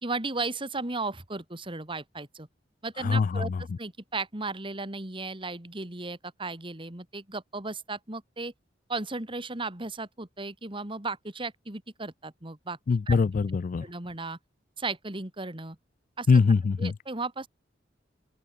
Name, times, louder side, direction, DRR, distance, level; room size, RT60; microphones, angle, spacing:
voice 1, 0.0-2.5 2.8-8.5 8.9-12.8 13.1-13.2 13.8-14.4 14.8-15.8 16.2-16.4 16.8-17.5, right 3 dB, 30° right, 2.4 m, -35 dB
voice 2, 3.0-3.5 12.9-13.8 16.3-16.9, left 4 dB, 45° left, 0.3 m, -23 dB
open air
head